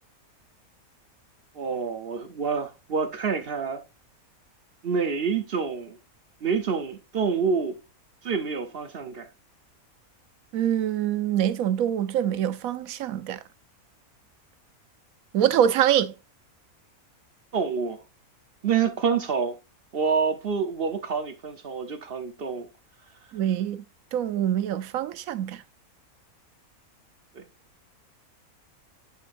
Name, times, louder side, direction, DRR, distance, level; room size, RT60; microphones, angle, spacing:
voice 1, 1.5-3.8 4.8-6.0 6.4-7.8 8.2-9.3 17.5-18.0 18.6-19.6 19.9-22.7 27.3-27.4, right 5 dB, 50° right, 0.8 m, -27 dB
voice 2, 10.5-13.4 15.3-16.1 23.3-23.8 24.1-25.6, right 10 dB, 70° right, 1.0 m, -24 dB
7.6 x 6.6 x 2.5 m
omnidirectional pair, 1.6 m